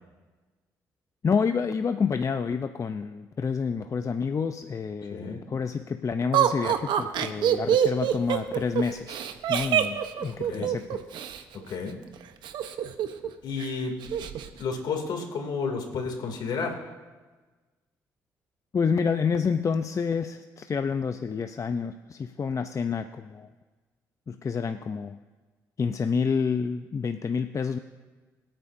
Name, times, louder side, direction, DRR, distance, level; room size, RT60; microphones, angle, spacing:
voice 1, 1.2-9.2 9.5-11.0 18.7-23.5 24.3-25.2 25.8-27.8, left 5 dB, 40° left, 8 dB, 0.6 m, -28 dB
voice 2, 5.1-5.4 10.5-10.7 11.7-12.0 13.4-14.0 14.6-16.8, left 5 dB, 65° left, 2 dB, 2.7 m, -31 dB
Laughter, 6.3-11.4 12.4-13.3 13.6-13.7 14.0-14.5, right 10 dB, 75° right, 1.0 m, -25 dB
25.5 x 8.9 x 2.7 m, 1.3 s
hypercardioid pair, 50°, 8 cm